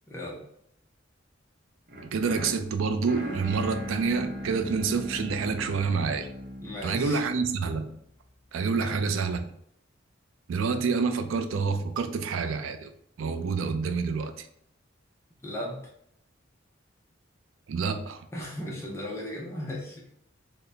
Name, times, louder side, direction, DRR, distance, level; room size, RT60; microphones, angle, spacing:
voice 1, 0.1-0.4 6.6-7.2 8.7-9.0 15.4-15.8 18.3-20.1, left 1 dB, 15° left, -3 dB, 0.5 m, -36 dB
sound 1, 1.9-8.0, equal, 45° right, 0.8 m, -39 dB
voice 2, 2.1-6.3 6.8-8.0 8.5-9.5 10.5-12.9 13.2-14.5 17.7-18.2, right 5 dB, 85° right, 8 dB, 0.4 m, -28 dB
3.8 x 2.1 x 3.3 m, 0.71 s
head